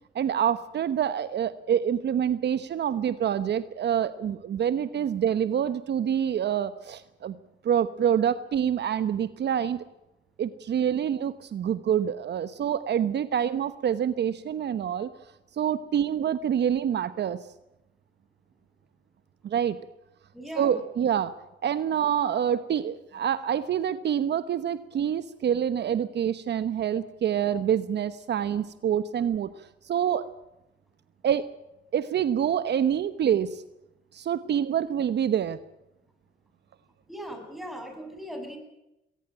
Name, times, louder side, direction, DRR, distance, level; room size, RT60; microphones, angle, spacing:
voice 1, 0.1-7.3 7.6-9.8 10.4-15.1 15.6-17.4 19.4-19.8 20.6-21.3 21.6-30.3 31.2-31.5 31.9-33.6 34.1-35.6, right 9 dB, 60° right, 13 dB, 1.1 m, -26 dB
voice 2, 20.3-20.8 37.1-38.6, equal, ahead, 4 dB, 7.2 m, -39 dB
20.5 x 18.0 x 8.9 m, 0.91 s
cardioid pair, 90°, 20 cm